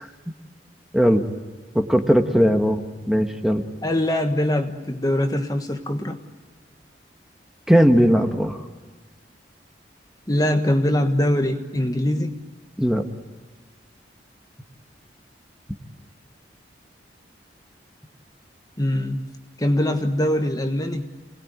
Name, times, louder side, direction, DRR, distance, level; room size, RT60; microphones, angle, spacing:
voice 1, 0.9-1.2 1.7-2.8 3.1-3.6 7.7-8.6 12.8-13.0, equal, 5° right, 5 dB, 1.4 m, -18 dB
voice 2, 3.8-6.2 10.3-12.4 18.8-19.2 19.6-21.1, left 1 dB, 20° left, 6 dB, 1.4 m, -22 dB
28.5 x 20.0 x 9.5 m, 1.4 s
head